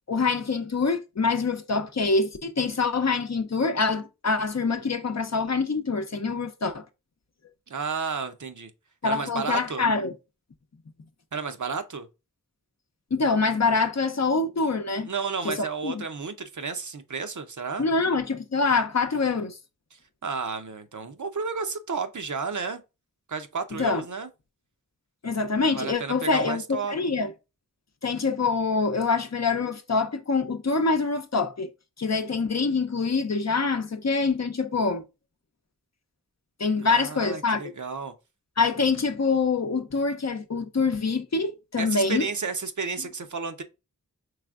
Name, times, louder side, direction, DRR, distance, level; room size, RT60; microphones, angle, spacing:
voice 1, 0.1-6.8 9.0-10.1 13.1-15.1 15.4-15.6 15.8-16.0 17.8-19.6 23.7-24.0 25.2-26.6 26.9-27.3 28.0-31.7 32.0-35.0 36.6-37.6 38.6-42.3, left 4 dB, 50° left, 0.7 m, -25 dB
voice 2, 7.7-8.7 9.0-9.9 11.3-12.1 15.1-17.9 19.9-22.8 23.3-24.3 25.7-26.9 36.8-38.1 41.8-43.6, right 5 dB, 60° right, 0.7 m, -32 dB
4.8 x 3.3 x 2.4 m
wide cardioid pair, 40°, 34 cm